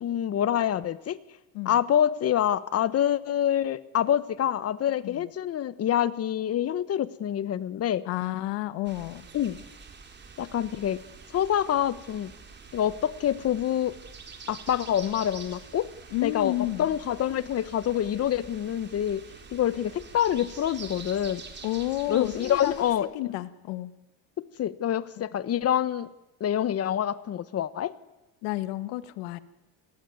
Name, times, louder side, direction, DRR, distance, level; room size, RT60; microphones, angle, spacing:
voice 1, 0.0-1.2 1.6-8.1 9.3-9.6 10.4-11.0 11.3-12.3 12.7-14.0 14.5-15.9 16.2-16.5 16.8-19.2 19.5-21.4 22.1-23.4 24.4-26.1 26.4-27.9, left 10 dB, 35° left, 16 dB, 1.1 m, -26 dB
voice 2, 8.1-9.3 16.1-16.9 21.6-22.7 23.1-23.9 25.2-25.3 28.4-29.4, left 17 dB, 80° left, 13 dB, 1.8 m, -31 dB
sound 1, 8.8-23.0, right 5 dB, 25° right, 3.9 m, -46 dB
29.5 x 20.5 x 9.4 m, 1.0 s
cardioid pair, 150°, 41 cm